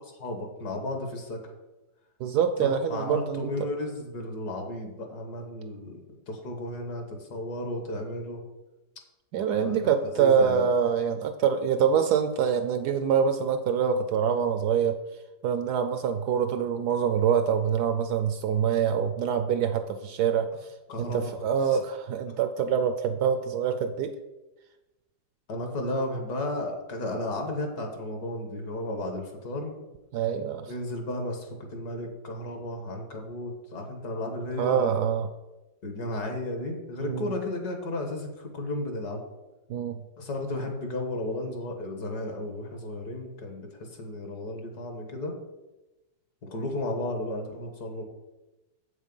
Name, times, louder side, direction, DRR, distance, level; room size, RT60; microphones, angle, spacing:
voice 1, 0.0-1.4 2.6-8.4 9.6-9.8 10.2-10.7 20.9-21.2 21.7-21.8 25.5-29.8 30.7-35.0 35.8-39.2 40.2-45.4 46.4-48.0, left 1 dB, 60° left, 4 dB, 1.9 m, -34 dB
voice 2, 2.2-3.5 9.3-15.0 15.4-20.5 21.0-24.1 30.1-30.7 34.6-35.3 37.0-37.3 39.7-40.0, right 7 dB, 70° right, 9 dB, 1.0 m, -25 dB
7.7 x 6.4 x 5.4 m, 1.0 s
omnidirectional pair, 2.0 m